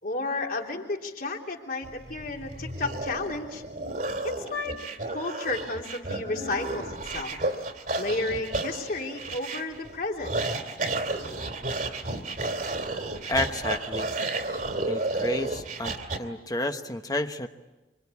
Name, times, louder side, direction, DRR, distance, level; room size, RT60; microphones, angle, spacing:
voice 1, 0.0-3.6 4.2-4.8 5.1-7.4 8.0-10.3, left 2 dB, 55° left, 1 dB, 3.3 m, -32 dB
sound 1, 1.8-16.2, right 2 dB, 50° right, 2.6 m, -32 dB
voice 2, 13.3-14.1 14.9-17.5, left 2 dB, 20° left, 7 dB, 1.1 m, -30 dB
25.5 x 25.0 x 8.5 m, 1.1 s
head